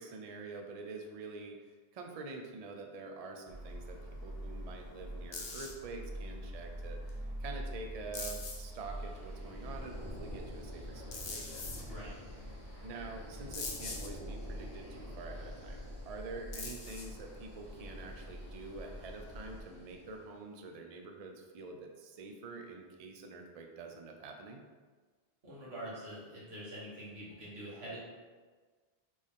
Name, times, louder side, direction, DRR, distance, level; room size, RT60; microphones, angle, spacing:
voice 1, 0.0-11.8 12.8-24.6, right 3 dB, 50° right, 3 dB, 0.4 m, -47 dB
sound 1, 3.5-19.6, right 1 dB, 40° left, 0.7 m, -46 dB
sound 2, 5.3-5.7 7.1-7.2 8.1-8.7 11.1-11.8 13.5-14.1 16.5-17.2, left 4 dB, 70° left, 0.9 m, -41 dB
sound 3, 8.5-20.3, left 1 dB, 15° right, 0.8 m, -49 dB
voice 2, 11.8-12.1 25.4-28.0, right 1 dB, 80° right, -8 dB, 1.8 m, -45 dB
4.3 x 3.2 x 3.6 m, 1.4 s
omnidirectional pair, 1.0 m